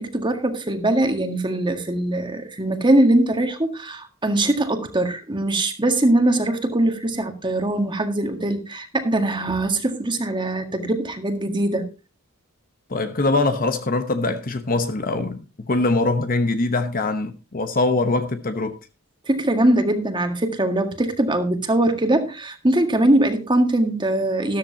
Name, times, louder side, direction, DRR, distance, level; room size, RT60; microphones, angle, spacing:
voice 1, 0.0-11.9 19.3-24.6, right 1 dB, 20° right, 1.8 m, -21 dB
voice 2, 12.9-18.8, left 2 dB, 40° left, 1.0 m, -23 dB
13.5 x 13.5 x 2.8 m
head